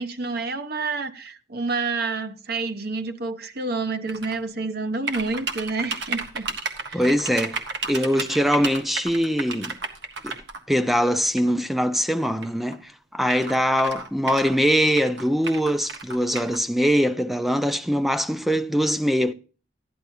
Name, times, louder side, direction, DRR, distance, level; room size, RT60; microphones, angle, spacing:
voice 1, 0.0-6.5 6.9-7.0, right 3 dB, 60° right, 1.0 m, -29 dB
sound 1, 4.1-4.4 5.1-10.6 11.4-11.5 12.4-12.5 12.7-12.8 13.2-14.6 15.0-16.6, right 4 dB, 75° right, 1.4 m, -32 dB
voice 2, 6.9-9.8 10.2-10.3 10.7-19.3, equal, ahead, 0.5 m, -22 dB
12.5 x 10.5 x 2.7 m
head